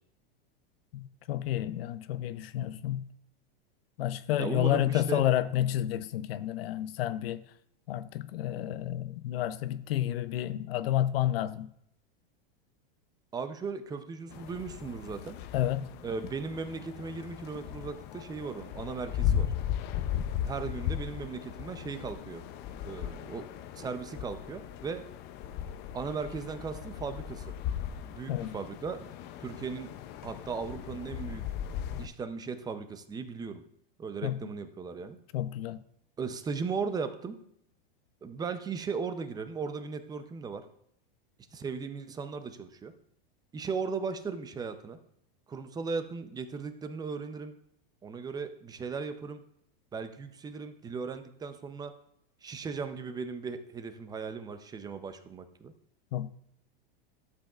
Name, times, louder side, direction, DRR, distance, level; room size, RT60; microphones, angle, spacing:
voice 1, 0.9-3.1 4.0-7.4 7.9-11.7 15.5-15.9 28.3-28.5 34.2-34.4 35.3-35.8 56.1-56.3, left 12 dB, 80° left, 0.6 m, -30 dB
voice 2, 4.4-5.2 13.3-15.4 16.0-19.5 20.4-22.4 22.8-23.4 23.8-25.0 25.9-27.5 28.0-29.1 29.4-29.9 30.2-31.5 32.0-33.6 34.0-35.2 36.2-37.4 38.2-40.7 41.5-42.9 43.5-45.0 45.5-47.6 48.0-49.4 49.9-51.9 52.4-55.7, right 5 dB, 15° right, 0.6 m, -37 dB
sound 1, 14.3-32.1, left 10 dB, 35° left, 0.5 m, -37 dB
12.0 x 7.9 x 2.4 m
supercardioid pair, 135°, 29 cm